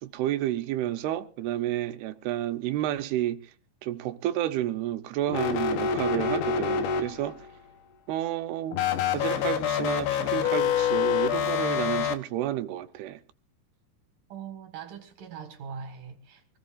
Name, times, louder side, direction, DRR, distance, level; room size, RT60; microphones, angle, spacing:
voice 1, 0.0-3.4 3.8-7.5 8.1-8.8 9.1-13.2, right 13 dB, 85° right, 2.8 m, -30 dB
sound 1, 5.3-7.5 8.7-12.2, left 7 dB, 80° left, 2.9 m, -26 dB
voice 2, 14.3-16.6, right 6 dB, 60° right, 2.9 m, -41 dB
24.5 x 16.5 x 2.5 m
omnidirectional pair, 4.5 m